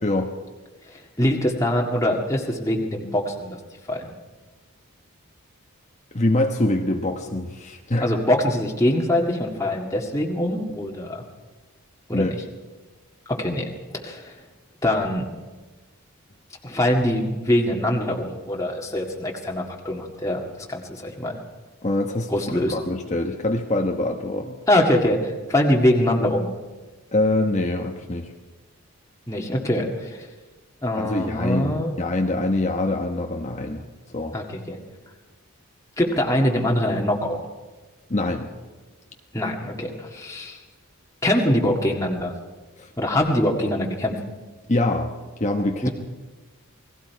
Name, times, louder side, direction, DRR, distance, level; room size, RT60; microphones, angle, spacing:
voice 1, 0.0-0.3 6.1-8.1 12.1-12.3 21.8-24.6 27.1-28.3 30.9-33.8 34.1-34.3 38.1-38.5 42.8-42.9 44.7-45.1 45.4-45.9, left 2 dB, 30° left, 2 dB, 1.1 m, -24 dB
voice 2, 1.2-3.6 3.9-4.1 8.0-11.2 12.1-12.4 13.3-13.7 13.9-14.3 14.8-15.3 16.6-20.4 20.7-21.4 22.3-22.8 24.7-26.5 29.3-30.3 30.8-31.9 34.3-34.8 36.0-37.4 39.3-40.6 41.2-42.3 43.0-44.2 45.8-45.9, left 1 dB, 15° left, -1 dB, 1.9 m, -23 dB
29.0 x 20.0 x 4.7 m, 1.3 s
head